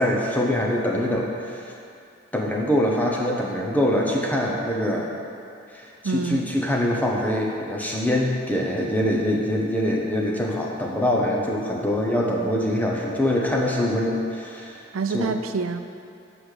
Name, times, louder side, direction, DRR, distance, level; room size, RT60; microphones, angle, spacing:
voice 1, 0.0-1.7 2.3-5.1 5.7-14.8 15.1-15.3, left 1 dB, 10° left, -2 dB, 0.8 m, -24 dB
voice 2, 6.0-6.5 14.9-15.8, right 5 dB, 90° right, 8 dB, 0.5 m, -27 dB
7.8 x 4.9 x 6.6 m, 2.5 s
head